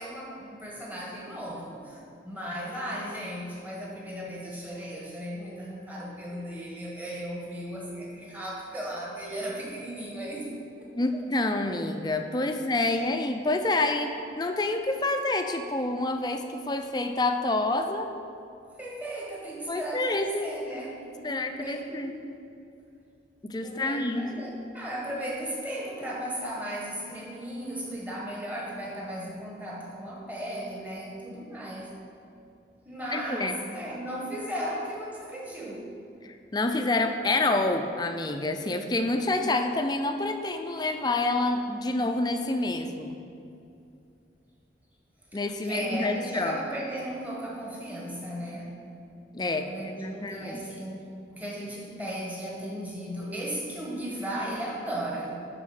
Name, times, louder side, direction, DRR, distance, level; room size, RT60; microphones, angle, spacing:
voice 1, 0.0-10.5 18.8-22.2 23.6-31.9 32.8-35.9 45.6-48.8 49.6-55.5, right 1 dB, 10° right, -4 dB, 1.3 m, -36 dB
voice 2, 10.9-18.1 19.7-20.5 21.2-22.1 23.4-24.3 33.1-33.6 36.2-43.2 45.3-46.6 49.3-50.7, left 2 dB, 25° left, 6 dB, 0.5 m, -28 dB
11.0 x 4.3 x 4.9 m, 2.5 s
head